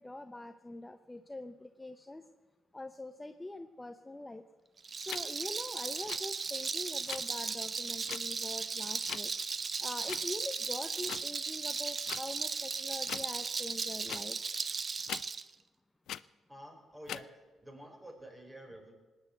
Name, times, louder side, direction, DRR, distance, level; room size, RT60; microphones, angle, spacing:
voice 1, 0.0-2.2 2.7-4.4 5.0-9.3 9.8-14.4, left 2 dB, 15° left, 8 dB, 0.8 m, -44 dB
Rattle, 4.8-15.4, right 5 dB, 40° right, 0.7 m, -36 dB
sound 1, 5.1-5.2 6.0-6.2 7.1-7.2 8.1-8.2 9.1-9.2 10.1-10.2 11.1-11.2 12.1-12.2 13.0-13.3 14.1-14.2 15.1-15.2 16.1-16.2 17.0-17.2, left 11 dB, 75° left, 0.4 m, -40 dB
voice 2, 16.5-17.3 17.6-18.9, right 1 dB, 15° right, 2 dB, 4.9 m, -49 dB
19.0 x 9.1 x 8.0 m, 1.2 s
cardioid pair, 90°, 0 cm